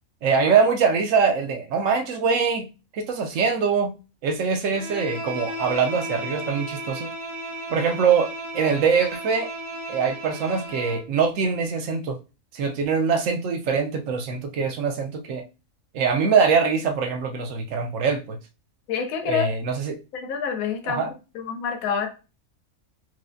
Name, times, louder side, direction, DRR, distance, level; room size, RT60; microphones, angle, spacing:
voice 1, 0.2-2.7 2.9-3.9 4.2-7.1 7.7-9.5 9.9-12.2 12.5-15.4 15.9-18.4 19.2-20.0 20.8-21.1, right 5 dB, 70° right, 0.9 m, -23 dB
Bowed string instrument, 4.7-11.1, right 1 dB, 35° right, 0.5 m, -34 dB
voice 2, 18.9-19.5 20.1-21.0 21.3-22.1, left 7 dB, 90° left, 1.1 m, -27 dB
4.6 x 2.1 x 2.5 m
omnidirectional pair, 1.4 m